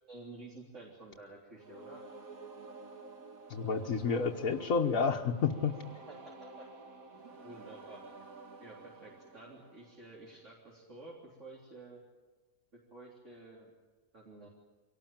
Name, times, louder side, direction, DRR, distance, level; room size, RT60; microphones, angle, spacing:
voice 1, 0.1-2.0 6.1-6.7 7.1-8.2 8.6-12.0 12.9-13.7 14.1-14.5, right 2 dB, 60° right, -3 dB, 4.0 m, -51 dB
sound 1, 1.6-10.4, right 3 dB, 85° right, 2.5 m, -51 dB
voice 2, 3.5-5.8, left 5 dB, 80° left, 0 dB, 1.7 m, -30 dB
24.5 x 18.5 x 8.9 m, 1.3 s
omnidirectional pair, 1.4 m